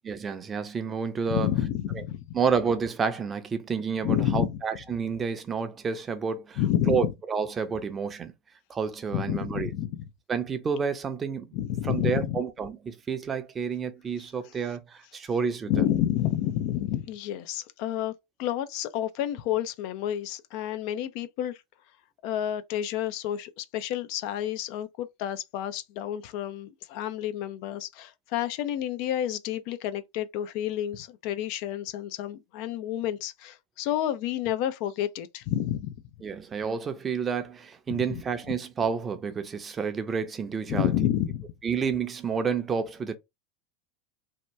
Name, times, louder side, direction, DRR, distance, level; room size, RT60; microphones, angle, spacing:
voice 1, 0.1-1.5 2.3-6.6 6.9-8.3 8.7-9.7 10.3-11.5 11.8-15.7 36.2-40.9 41.6-43.2, right 6 dB, 25° right, 0.6 m, -29 dB
voice 2, 1.3-2.2 4.0-4.6 6.6-7.0 9.1-10.0 11.5-12.4 15.7-18.1 18.4-21.6 22.2-35.9 37.9-38.0 40.7-41.5, left 11 dB, 60° left, 0.4 m, -29 dB
2.8 x 2.2 x 3.2 m
hypercardioid pair, 90°, 0 cm